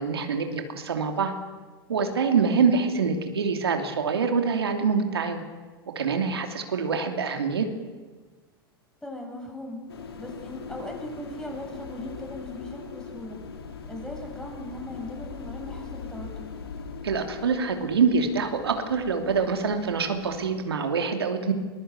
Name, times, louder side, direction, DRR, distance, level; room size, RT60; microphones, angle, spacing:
voice 1, 0.0-1.3 1.9-5.4 5.9-7.7 17.0-21.5, right 5 dB, 85° right, 5 dB, 2.9 m, -25 dB
voice 2, 9.0-9.8 10.2-13.4 13.9-16.5, left 1 dB, 5° left, 1 dB, 7.9 m, -38 dB
sound 1, 9.9-20.6, left 5 dB, 80° left, 3.3 m, -41 dB
22.5 x 22.0 x 8.2 m, 1.4 s
hypercardioid pair, 100°, 13 cm